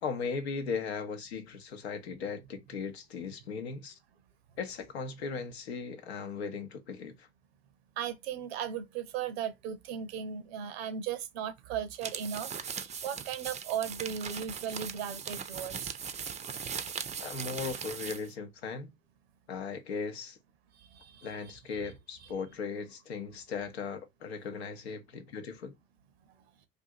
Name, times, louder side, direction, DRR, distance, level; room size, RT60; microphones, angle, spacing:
voice 1, 0.0-4.0 4.6-7.3 17.2-18.9 19.5-20.4 21.2-25.8, left 5 dB, 85° left, 0.7 m, -38 dB
voice 2, 8.0-12.5 12.8-15.9 20.9-21.3, right 8 dB, 75° right, 0.6 m, -36 dB
sound 1, 11.9-18.3, right 7 dB, 20° right, 0.4 m, -39 dB
2.6 x 2.5 x 2.6 m
hypercardioid pair, 65°, 31 cm